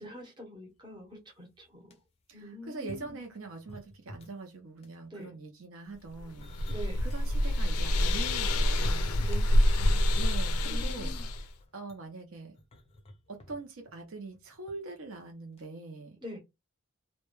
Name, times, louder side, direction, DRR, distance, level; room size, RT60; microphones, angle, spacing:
voice 1, 0.0-1.9 2.3-3.2 5.1-5.3 6.7-7.0 9.2-10.1 10.6-11.2 16.2-16.4, equal, 20° right, 0.7 m, -45 dB
sound 1, 1.0-1.1 1.6-2.0 2.8-4.5 4.8-5.1 5.9-7.3 7.7-7.8 8.3-9.3 9.7-10.4 11.0-14.8 15.1-15.3 15.6-15.7, left 1 dB, 25° left, 0.4 m, -53 dB
voice 2, 2.3-6.5 7.0-9.2 10.1-11.1 11.7-12.6 13.3-16.2, right 3 dB, 60° right, 0.6 m, -43 dB
sound 2, 6.1-11.5, left 1 dB, 85° left, 0.4 m, -27 dB
2.2 x 2.1 x 3.0 m
head